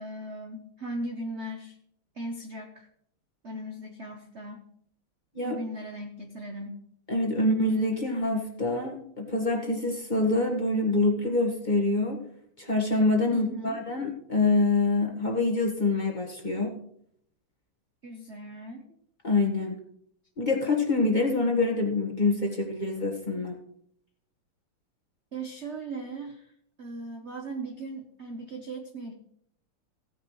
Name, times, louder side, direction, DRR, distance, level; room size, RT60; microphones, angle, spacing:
voice 1, 0.0-1.8 2.1-2.9 3.4-4.6 5.4-6.8 13.3-13.8 18.0-18.8 25.3-26.5 26.8-29.1, right 1 dB, 50° right, 4 dB, 0.8 m, -38 dB
voice 2, 7.1-12.2 12.6-16.7 19.2-19.8 20.4-23.6, left 2 dB, 25° left, -1 dB, 1.4 m, -26 dB
16.0 x 9.7 x 3.2 m, 0.68 s
omnidirectional pair, 2.4 m